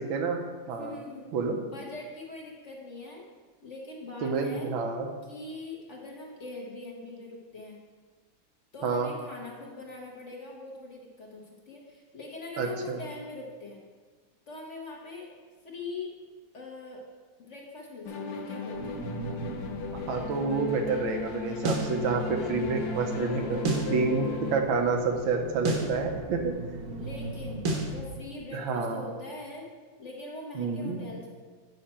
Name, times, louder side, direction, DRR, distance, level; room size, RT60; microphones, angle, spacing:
voice 1, 0.8-1.3 1.6-3.2 3.6-4.7 5.2-7.8 8.7-13.8 14.5-15.3 15.6-16.1 16.5-17.0 17.4-19.0 27.0-29.7 30.0-31.3, left 3 dB, 45° left, -2 dB, 1.2 m, -42 dB
voice 2, 4.2-5.1 8.8-9.1 12.6-13.0 20.1-26.5 28.5-29.0 30.5-31.0, right 4 dB, 85° right, 3 dB, 1.6 m, -29 dB
sound 1, 18.0-24.6, left 5 dB, 75° left, 1.4 m, -36 dB
sound 2, 18.7-28.2, right 4 dB, 70° right, 1.5 m, -41 dB
sound 3, 21.6-21.9 23.6-23.9 25.6-25.9 27.6-27.9, right 2 dB, 50° right, 1.2 m, -28 dB
8.6 x 5.9 x 4.3 m, 1.4 s
omnidirectional pair, 2.1 m